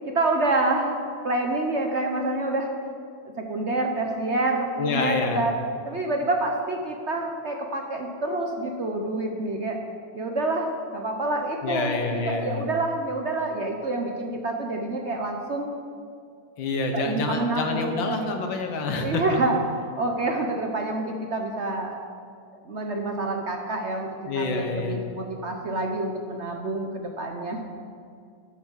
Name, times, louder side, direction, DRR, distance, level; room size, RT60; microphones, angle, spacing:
voice 1, 0.0-1.0 1.2-2.7 3.4-9.8 10.1-15.7 16.9-18.3 18.9-19.6 20.0-22.0 22.7-27.6, right 2 dB, 50° right, 2 dB, 0.9 m, -27 dB
voice 2, 4.8-5.4 11.6-12.6 16.6-19.2 24.3-25.0, left 4 dB, 90° left, 4 dB, 1.9 m, -27 dB
12.0 x 7.1 x 6.3 m, 2.3 s
omnidirectional pair, 2.0 m